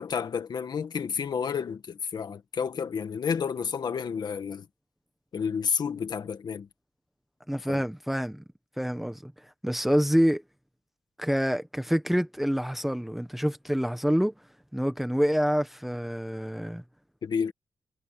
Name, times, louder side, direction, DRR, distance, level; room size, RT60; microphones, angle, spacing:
voice 1, 0.0-4.7 5.3-6.7 7.7-7.8 17.2-17.5, left 6 dB, 50° left, 1.6 m, -30 dB
voice 2, 7.5-8.4 8.8-9.3 9.6-10.4 11.2-14.3 14.7-16.8, equal, ahead, 1.2 m, -27 dB
wide cardioid pair, 175°, 9 cm